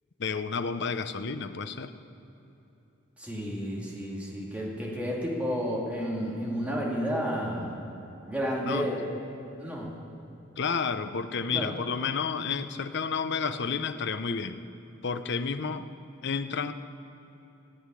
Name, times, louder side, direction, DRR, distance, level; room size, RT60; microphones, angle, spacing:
voice 1, 0.2-1.9 8.6-8.9 10.6-14.6 15.0-15.8 16.2-16.7, left 5 dB, 60° left, 10 dB, 0.7 m, -31 dB
voice 2, 3.2-7.7 8.3-9.0 9.6-9.9 11.5-11.7, equal, 5° right, -4 dB, 2.5 m, -31 dB
16.0 x 7.9 x 9.9 m, 3.0 s
head